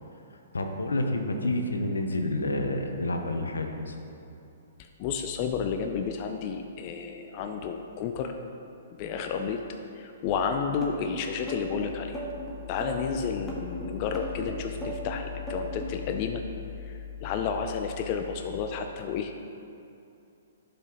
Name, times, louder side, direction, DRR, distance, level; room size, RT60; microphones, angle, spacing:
voice 1, 0.5-3.9, left 1 dB, 85° left, 4 dB, 0.7 m, -29 dB
voice 2, 4.8-8.3 9.0-9.6 9.9-12.3 12.7-16.4 16.8-19.3, left 6 dB, 40° left, 5 dB, 0.4 m, -31 dB
sound 1, 10.8-16.0, right 1 dB, 5° left, 1.5 m, -37 dB
11.0 x 5.1 x 3.0 m, 2.7 s
hypercardioid pair, 125°, 0 cm